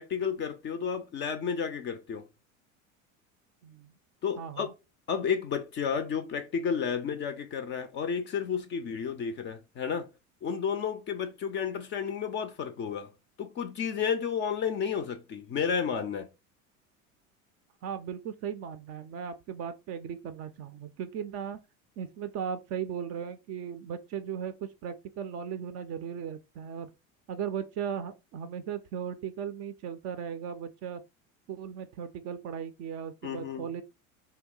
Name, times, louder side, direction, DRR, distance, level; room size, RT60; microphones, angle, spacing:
voice 1, 0.0-2.2 4.2-4.7 5.1-10.1 10.4-13.1 13.4-16.3 33.2-33.7, left 7 dB, 30° left, 0.4 m, -32 dB
voice 2, 3.6-3.9 4.4-4.7 17.8-21.6 22.0-26.9 27.3-31.0 31.5-33.8, right 8 dB, 40° right, 0.4 m, -37 dB
2.8 x 2.1 x 3.6 m
hypercardioid pair, 80°, 42 cm